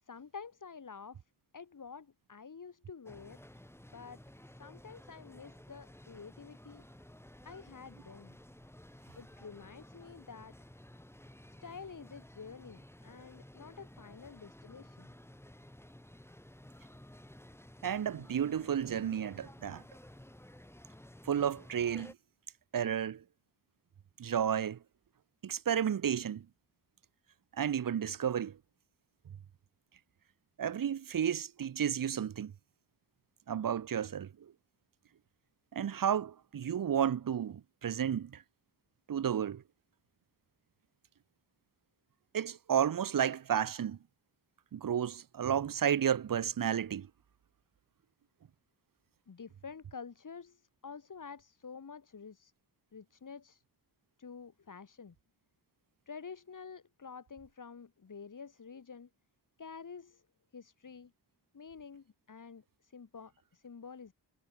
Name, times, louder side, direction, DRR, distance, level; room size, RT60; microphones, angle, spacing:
voice 1, 0.0-1.3 1.5-3.4 3.9-4.2 4.5-6.9 7.4-8.4 9.2-10.5 11.6-15.1 49.3-52.5 52.9-53.6 54.2-55.2 56.1-59.1 59.6-60.2 60.5-61.1 61.5-64.1, left 5 dB, 50° left, 7.3 m, -49 dB
sound 1, 3.1-22.1, left 1 dB, 5° left, 5.7 m, -54 dB
voice 2, 17.8-19.8 21.2-22.1 22.7-23.2 24.2-24.8 25.4-26.4 27.6-28.6 30.6-32.5 33.5-34.3 35.7-38.4 39.1-39.6 42.3-44.0 44.7-47.1, right 9 dB, 55° right, 1.0 m, -32 dB
wide cardioid pair, 110°, 41 cm